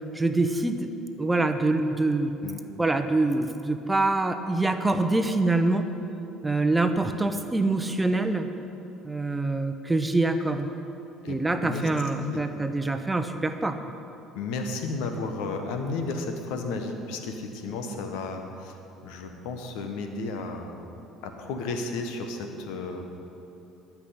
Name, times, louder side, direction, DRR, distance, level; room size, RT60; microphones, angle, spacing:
voice 1, 0.1-0.9 1.2-2.3 2.8-5.9 6.4-8.5 9.0-10.7 11.3-13.8, right 2 dB, 15° right, 7 dB, 0.9 m, -25 dB
voice 2, 11.2-11.9 12.2-12.6 14.3-20.9 21.2-23.0, left 3 dB, 70° left, 5 dB, 1.2 m, -33 dB
12.5 x 6.1 x 8.5 m, 2.8 s
hypercardioid pair, 60°, 0 cm